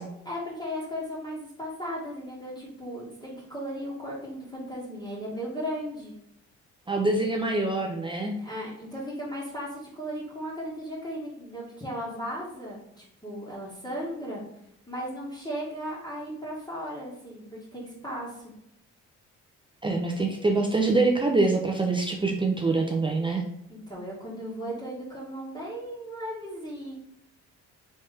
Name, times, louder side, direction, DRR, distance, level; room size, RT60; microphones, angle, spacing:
voice 1, 0.2-6.1 8.4-14.4 14.9-17.4 17.7-18.4 23.7-27.0, equal, 15° left, -8 dB, 1.7 m, -36 dB
voice 2, 6.9-8.4 19.8-23.4, right 3 dB, 15° right, 1 dB, 0.5 m, -25 dB
4.1 x 3.2 x 3.4 m, 0.78 s
cardioid pair, 90°, 30 cm